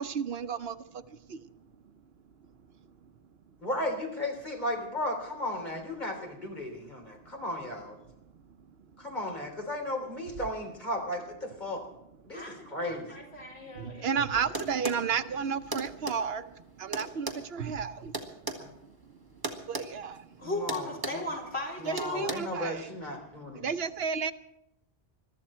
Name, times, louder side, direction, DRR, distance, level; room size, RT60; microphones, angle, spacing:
voice 1, 0.0-1.5 13.6-16.5 16.8-18.2 19.6-20.5 21.9-22.9 23.6-24.3, right 6 dB, 75° right, 11 dB, 1.0 m, -33 dB
voice 2, 3.6-8.0 9.0-11.8 12.2-12.4 12.7-13.1 18.6-18.7 20.4-21.2 21.8-23.7, left 1 dB, 45° left, 1 dB, 3.6 m, -35 dB
voice 3, 12.3-14.6 20.4-22.3 22.6-22.7, left 1 dB, 85° left, -3 dB, 4.5 m, -37 dB
sound 1, 14.5-15.0 15.7-16.2 16.9-18.6 19.4-19.9 20.2-20.3 20.7-21.3 22.0-22.3, right 2 dB, 20° right, 1.7 m, -35 dB
22.0 x 13.0 x 4.4 m, 0.82 s
omnidirectional pair, 1.1 m